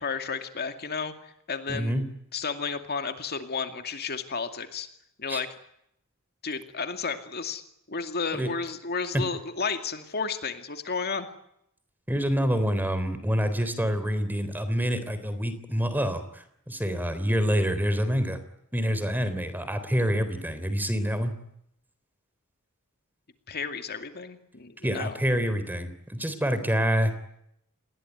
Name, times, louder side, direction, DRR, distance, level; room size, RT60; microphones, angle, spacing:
voice 1, 0.0-1.9 2.3-4.9 5.2-5.5 6.4-7.6 7.9-11.3 23.5-25.2, left 5 dB, 50° left, 7 dB, 2.4 m, -32 dB
voice 2, 1.7-2.1 5.3-5.4 8.3-8.5 9.1-9.2 12.1-18.4 18.7-21.3 24.8-27.2, equal, 10° right, 11 dB, 3.7 m, -27 dB
29.5 x 21.0 x 9.4 m, 0.77 s
head